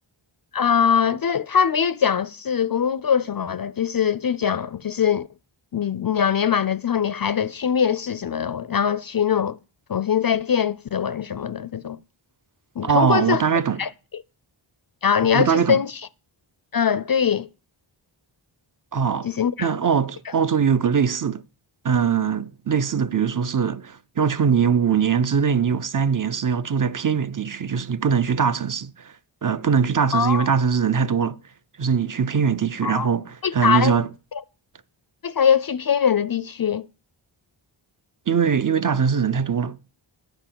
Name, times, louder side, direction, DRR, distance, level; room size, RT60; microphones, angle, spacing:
voice 1, 0.5-5.3 5.7-9.6 9.9-12.0 12.8-13.4 13.8-14.2 15.0-16.0 16.7-17.5 19.2-19.7 20.3-20.4 30.1-30.5 32.8-33.1 33.4-34.0 35.2-36.9, left 7 dB, 45° left, 0.4 m, -22 dB
voice 2, 12.8-13.8 15.3-15.8 18.9-19.3 19.6-21.4 21.8-29.1 29.4-31.4 31.8-34.1 38.3-39.8, right 7 dB, 40° right, 0.5 m, -21 dB
8.9 x 4.9 x 7.5 m
wide cardioid pair, 50°, 49 cm